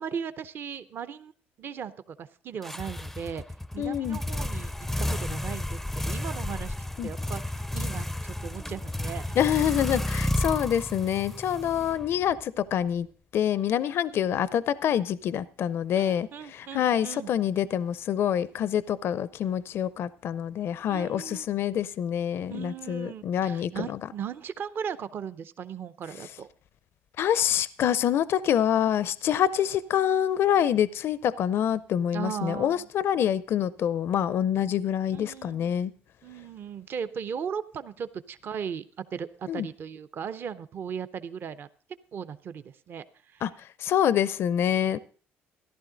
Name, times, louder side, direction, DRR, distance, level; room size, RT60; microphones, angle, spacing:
voice 1, 0.0-1.3 1.6-3.4 3.7-4.7 5.1-6.7 7.0-9.4 11.6-12.1 13.8-14.3 15.9-17.3 20.9-21.5 22.5-26.5 32.1-32.9 35.1-35.8 36.2-41.7 42.1-43.5, right 7 dB, 50° right, 0.7 m, -37 dB
sound 1, 2.6-12.4, left 1 dB, 5° left, 0.4 m, -32 dB
voice 2, 3.8-4.2 7.0-7.1 9.4-13.1 13.3-23.9 27.2-35.9 39.5-39.7 43.4-43.5 43.8-45.0, left 10 dB, 60° left, 0.5 m, -26 dB
14.0 x 11.5 x 3.9 m
supercardioid pair, 85°, 5 cm